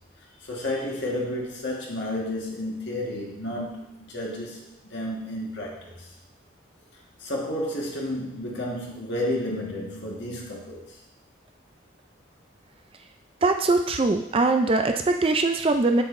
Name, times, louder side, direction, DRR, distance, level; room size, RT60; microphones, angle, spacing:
voice 1, 0.4-6.1 7.2-10.9, left 1 dB, 70° left, -2 dB, 1.6 m, -31 dB
voice 2, 13.4-16.0, right 3 dB, 30° right, 5 dB, 0.4 m, -22 dB
7.6 x 7.1 x 2.6 m, 0.79 s
head